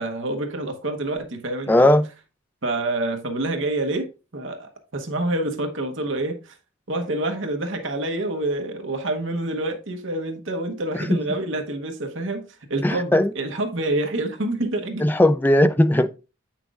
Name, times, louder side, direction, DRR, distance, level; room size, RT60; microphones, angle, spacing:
voice 1, 0.0-1.9 2.6-6.6 6.9-15.1, right 2 dB, 60° right, 1.0 m, -27 dB
voice 2, 1.7-2.0 11.1-11.2 12.8-13.3 15.0-16.1, left 1 dB, 10° left, 0.3 m, -17 dB
8.0 x 5.8 x 2.4 m
head